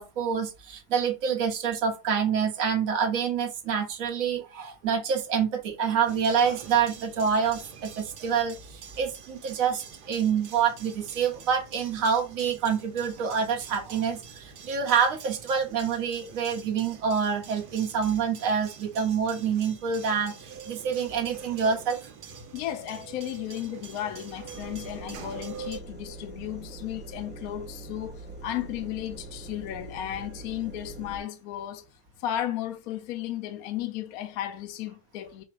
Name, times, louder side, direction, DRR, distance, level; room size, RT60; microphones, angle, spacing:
voice 1, 0.0-22.0, right 6 dB, 60° right, 1.3 m, -27 dB
sound 1, 6.1-25.8, right 6 dB, 80° right, 1.4 m, -45 dB
voice 2, 22.5-31.8 32.2-35.4, left 12 dB, 70° left, 1.0 m, -34 dB
sound 2, 24.5-31.2, right 2 dB, 10° right, 1.0 m, -43 dB
4.9 x 2.1 x 4.7 m
omnidirectional pair, 1.7 m